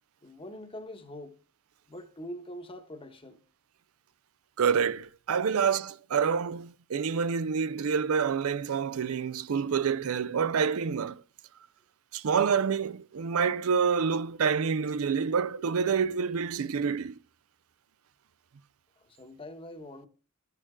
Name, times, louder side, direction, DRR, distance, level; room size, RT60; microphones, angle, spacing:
voice 1, 0.2-1.4 1.9-3.4 19.0-20.1, left 1 dB, 25° left, 1.0 m, -43 dB
voice 2, 4.6-11.2 12.1-17.1, right 6 dB, 70° right, 0.5 m, -27 dB
12.5 x 6.6 x 3.7 m
head